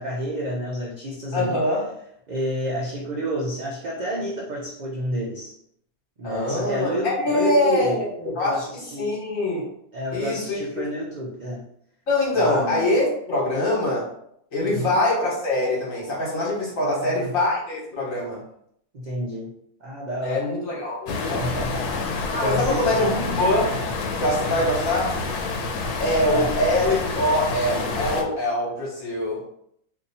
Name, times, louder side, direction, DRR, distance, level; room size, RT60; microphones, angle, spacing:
voice 1, 0.0-1.6 2.3-5.6 6.2-8.0 8.4-9.2 9.9-11.6 12.3-12.9 14.6-14.9 16.8-17.3 18.9-19.5 19.8-20.4 21.4-23.1 24.5-24.7 26.3-26.5, equal, 60° right, -4 dB, 0.4 m, -30 dB
voice 2, 1.3-1.8 6.2-8.7 9.0-9.6 10.1-10.9 12.1-14.1 14.5-18.4 20.2-21.5 22.2-23.7 24.2-25.1 26.0-29.4, left 1 dB, 65° left, -5 dB, 1.4 m, -23 dB
sound 1, 21.1-28.2, left 3 dB, 85° left, 1.1 m, -28 dB
2.7 x 2.7 x 4.0 m, 0.71 s
omnidirectional pair, 1.6 m